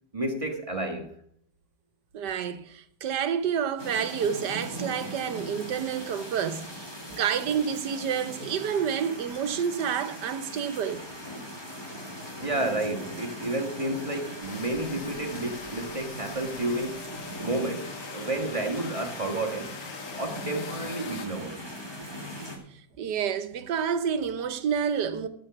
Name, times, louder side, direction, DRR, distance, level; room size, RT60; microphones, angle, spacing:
voice 1, 0.1-1.1 12.4-17.1 17.4-19.7 20.2-21.6, right 2 dB, 20° right, 1.4 m, -31 dB
voice 2, 2.1-11.1 23.0-25.3, right 7 dB, 85° right, 1.6 m, -29 dB
sound 1, 3.8-22.6, equal, 15° left, 2.7 m, -40 dB
sound 2, 14.4-21.3, left 7 dB, 55° left, 1.2 m, -43 dB
14.5 x 6.7 x 6.0 m
omnidirectional pair, 1.8 m